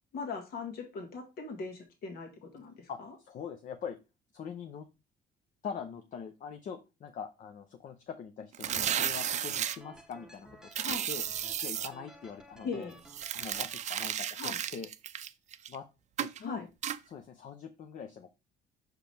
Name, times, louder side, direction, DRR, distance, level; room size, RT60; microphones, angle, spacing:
voice 1, 0.1-3.1 10.8-11.0 12.6-12.9 14.4-14.6 16.4-16.7, left 4 dB, 65° left, 3 dB, 1.9 m, -39 dB
voice 2, 2.9-4.0 4.3-4.9 5.6-11.2 11.6-12.9 13.3-14.9 15.7-15.9 16.2-16.7 17.1-18.3, left 6 dB, 50° left, 6 dB, 0.8 m, -43 dB
sound 1, 8.5-9.8 10.7-11.9 13.1-15.8 16.2-16.4 16.8-17.0, right 10 dB, 45° right, 0.5 m, -33 dB
sound 2, 8.7-13.8, right 1 dB, 5° right, 0.8 m, -54 dB
6.1 x 4.9 x 3.4 m, 0.27 s
cardioid pair, 110°, 17 cm